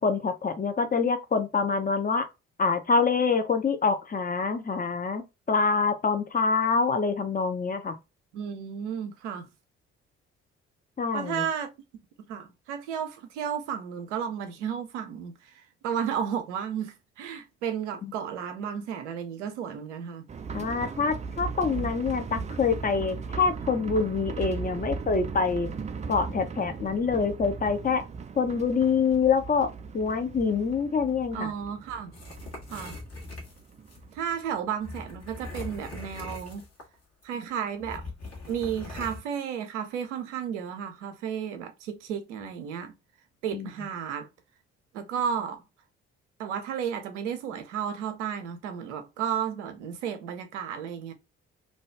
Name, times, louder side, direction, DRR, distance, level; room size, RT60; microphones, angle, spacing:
voice 1, 0.0-2.3 2.6-5.2 5.5-7.9 11.0-11.5 18.0-18.1 20.5-25.7 26.1-28.0 28.4-31.5 43.5-43.7, left 5 dB, 25° left, 0.7 m, -26 dB
voice 2, 8.3-9.5 11.1-11.7 12.3-20.3 31.3-32.1 32.7-33.0 34.1-36.6 37.2-38.1 38.5-42.9 43.4-44.3 44.9-45.6 46.4-51.1, right 8 dB, 80° right, 0.6 m, -33 dB
sound 1, 20.3-35.8 36.0-36.1 36.5-36.6, right 5 dB, 20° right, 0.4 m, -38 dB
sound 2, 32.1-34.0 34.8-36.9 37.2-37.3 37.8-39.2, left 3 dB, 45° left, 1.3 m, -41 dB
2.6 x 2.3 x 3.1 m
figure-of-eight pair, 45°, 35 cm